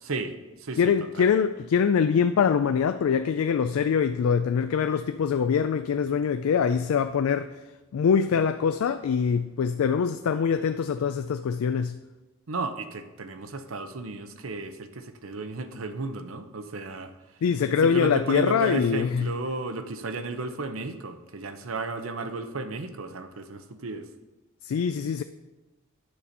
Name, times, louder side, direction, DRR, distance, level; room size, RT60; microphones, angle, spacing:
voice 1, 0.0-1.3 12.5-17.1 17.8-24.1, right 3 dB, 70° right, 0.8 m, -34 dB
voice 2, 0.8-7.5 7.9-12.0 17.4-19.3 24.6-25.2, left 6 dB, 80° left, 0.3 m, -24 dB
9.6 x 4.3 x 6.6 m
head